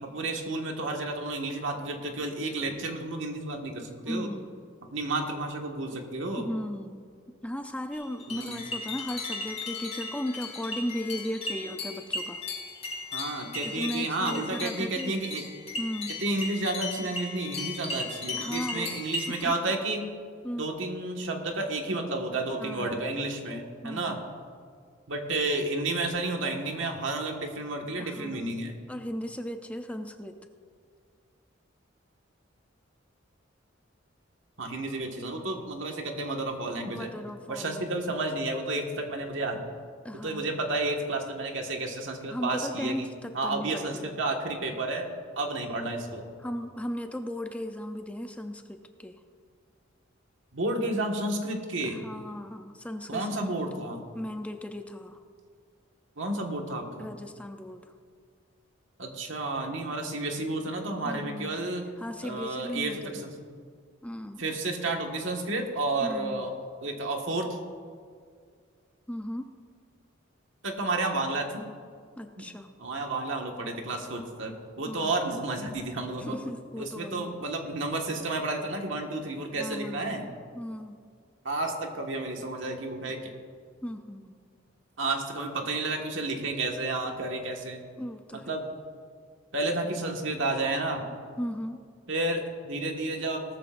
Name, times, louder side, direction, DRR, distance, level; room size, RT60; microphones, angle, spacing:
voice 1, 0.0-4.3 4.9-6.5 8.3-8.6 13.1-15.4 16.2-20.0 20.6-24.2 25.1-28.8 34.6-37.1 37.5-39.6 40.2-43.1 43.3-45.1 45.3-46.3 50.5-52.0 53.1-54.0 56.2-57.1 59.0-61.9 62.2-63.3 64.4-66.5 66.8-67.6 70.6-71.5 72.4-72.5 72.8-76.3 76.8-80.3 81.4-83.3 85.0-87.8 88.5-88.7 89.5-91.1 92.1-93.4, right 2 dB, 70° right, 2 dB, 1.7 m, -31 dB
voice 2, 4.1-4.7 6.4-7.1 7.4-12.4 13.6-15.2 15.8-16.1 18.3-19.0 19.3-19.5 20.4-20.7 22.6-23.2 23.8-24.1 28.0-28.6 28.9-30.4 36.9-38.2 40.0-40.5 42.3-44.1 46.4-49.2 51.8-53.3 54.1-55.2 57.0-57.9 61.0-61.6 62.0-63.3 64.0-64.4 66.0-66.5 69.1-69.5 72.2-72.7 74.8-75.1 76.2-77.3 79.6-81.0 83.8-84.4 88.0-88.5 91.4-91.8, equal, 5° left, 6 dB, 0.5 m, -36 dB
sound 1, 7.9-19.4, left 3 dB, 35° left, 3.4 m, -37 dB
18.5 x 13.5 x 2.6 m, 2.1 s
head